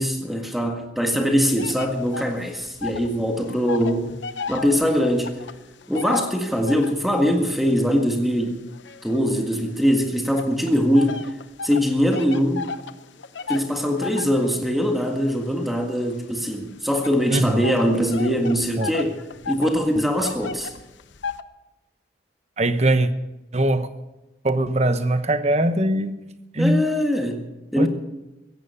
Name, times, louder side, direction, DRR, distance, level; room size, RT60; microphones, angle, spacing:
voice 1, 0.0-4.1 4.5-5.3 5.9-8.6 9.0-11.2 11.6-12.6 13.5-19.2 19.5-20.7 26.6-27.5 27.7-27.9, equal, ahead, 2 dB, 1.7 m, -22 dB
sound 1, 1.6-3.2 3.4-7.1 7.7-9.7 10.4-21.4, left 5 dB, 80° left, 0.8 m, -35 dB
voice 2, 17.3-17.6 18.8-18.9 22.6-23.1 23.5-23.9 24.4-26.2 26.5-26.8 27.8-27.9, right 1 dB, 35° right, 10 dB, 1.0 m, -21 dB
16.5 x 15.5 x 5.6 m, 1.0 s
head